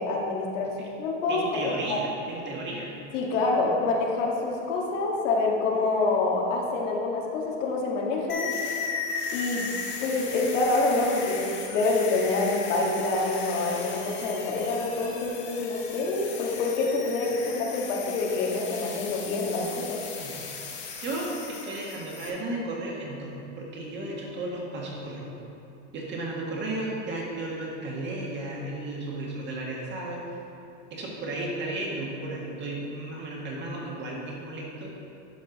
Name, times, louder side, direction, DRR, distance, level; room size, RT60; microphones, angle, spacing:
voice 1, 0.0-0.7 1.0-2.0 3.1-8.5 9.3-9.7 10.0-20.0, left 3 dB, 85° left, -2 dB, 1.7 m, -26 dB
voice 2, 1.3-2.9 20.1-20.5 20.9-25.3 25.9-30.2 30.9-35.1, right 2 dB, 30° right, -3 dB, 1.7 m, -34 dB
sound 1, 8.3-22.3, left 5 dB, 30° left, 1.3 m, -37 dB
11.0 x 5.4 x 4.0 m, 2.8 s
supercardioid pair, 140°, 36 cm